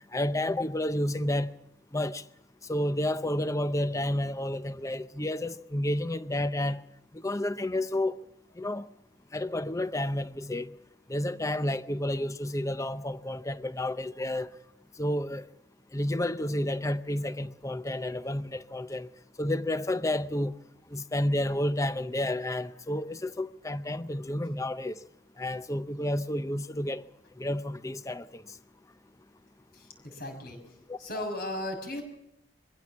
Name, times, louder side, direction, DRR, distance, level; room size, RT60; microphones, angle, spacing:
voice 1, 0.1-1.5 1.9-2.2 2.7-6.8 7.1-8.2 8.6-8.9 9.3-10.7 11.1-14.5 15.0-15.5 15.9-19.1 19.4-20.5 20.9-25.0 25.4-27.0 27.4-28.4 30.9-31.2, left 1 dB, 15° left, 0.7 m, -30 dB
voice 2, 29.7-30.6 31.0-32.0, left 1 dB, 55° left, 6.4 m, -36 dB
23.0 x 16.0 x 7.3 m
head